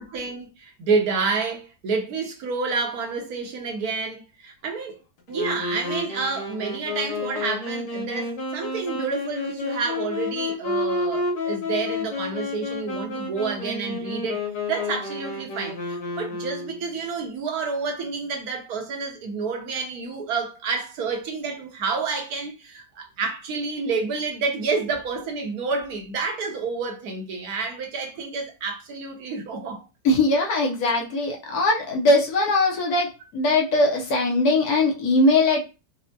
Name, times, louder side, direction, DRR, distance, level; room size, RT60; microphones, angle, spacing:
voice 1, 0.0-5.0 5.3-29.8, right 4 dB, 65° right, 1.1 m, -29 dB
Wind instrument woodwind instrument, 5.3-17.0, left 2 dB, 85° left, 1.8 m, -30 dB
voice 2, 30.0-35.6, left 2 dB, 65° left, 1.1 m, -21 dB
4.2 x 2.1 x 2.7 m
omnidirectional pair, 1.9 m